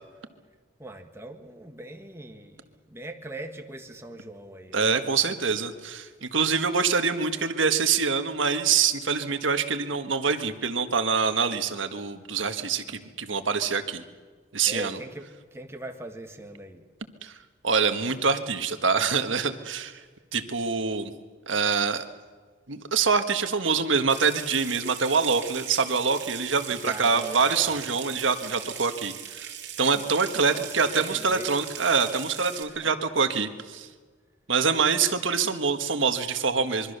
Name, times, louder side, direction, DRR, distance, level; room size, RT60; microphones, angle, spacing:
voice 1, 0.8-5.0 14.6-16.8 26.7-27.8 30.3-31.5 32.6-33.0, right 1 dB, 15° right, 4 dB, 1.6 m, -41 dB
voice 2, 4.7-14.0 14.5-15.0 17.2-17.4 17.6-20.0 20.3-21.1 21.5-22.0 22.7-29.5 29.8-33.9 34.5-37.0, right 5 dB, 85° right, 8 dB, 1.5 m, -25 dB
Water tap faucet / Sink (filling or washing) / Trickle dribble, 24.1-32.6, right 9 dB, 65° right, 3.2 m, -40 dB
25.0 x 23.0 x 6.7 m, 1.5 s
head